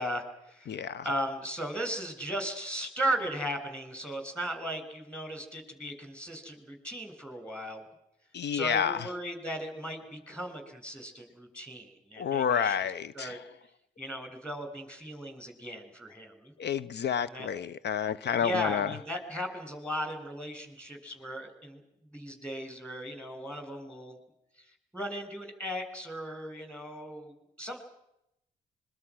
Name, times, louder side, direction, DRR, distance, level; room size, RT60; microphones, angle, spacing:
voice 1, 0.0-7.8 8.5-13.4 14.0-16.5 17.2-17.5 18.2-21.8 22.1-24.2 24.6-27.8, equal, 5° left, 6 dB, 7.4 m, -37 dB
voice 2, 0.7-1.0 8.3-9.1 12.2-13.4 16.6-18.9, left 8 dB, 60° left, 19 dB, 0.8 m, -29 dB
25.5 x 24.0 x 6.3 m, 0.83 s
hypercardioid pair, 45°, 20 cm